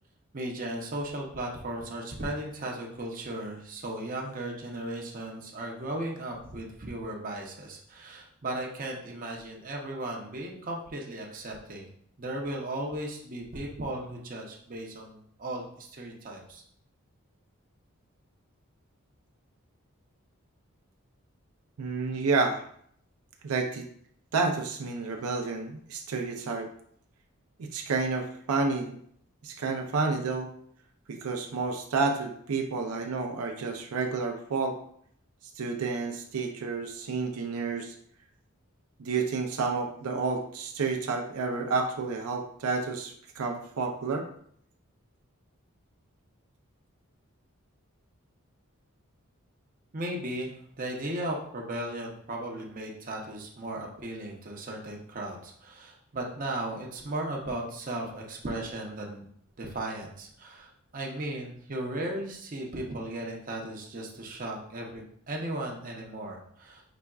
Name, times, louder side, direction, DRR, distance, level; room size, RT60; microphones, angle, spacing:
voice 1, 0.3-11.9 12.2-16.6 49.9-59.2 59.6-66.8, right 1 dB, 40° right, 0 dB, 0.7 m, -36 dB
voice 2, 21.8-22.7 23.4-23.9 24.3-26.7 27.6-29.0 29.4-30.5 31.1-34.8 35.6-38.0 39.0-44.3, right 4 dB, 85° right, 3 dB, 0.5 m, -30 dB
5.0 x 3.3 x 2.3 m, 0.64 s
head